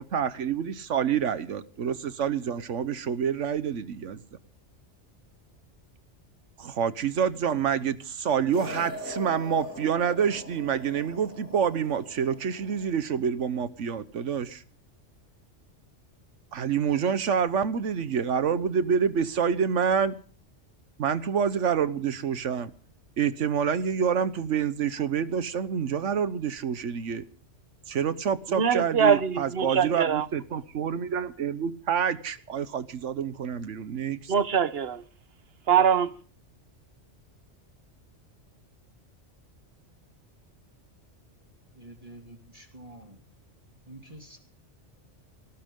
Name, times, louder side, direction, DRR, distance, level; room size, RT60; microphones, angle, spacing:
voice 1, 0.0-4.2 6.6-14.6 16.5-20.2 21.0-22.7 23.2-27.2 27.9-34.3, right 7 dB, 90° right, 1.3 m, -27 dB
sound 1, 8.5-13.0, equal, 15° left, 4.6 m, -41 dB
voice 2, 28.6-30.3 34.3-35.1 35.7-36.1, right 7 dB, 55° right, 1.2 m, -23 dB
voice 3, 41.7-43.2 43.9-44.4, right 1 dB, 30° right, 2.6 m, -47 dB
19.5 x 18.0 x 3.7 m
omnidirectional pair, 1.2 m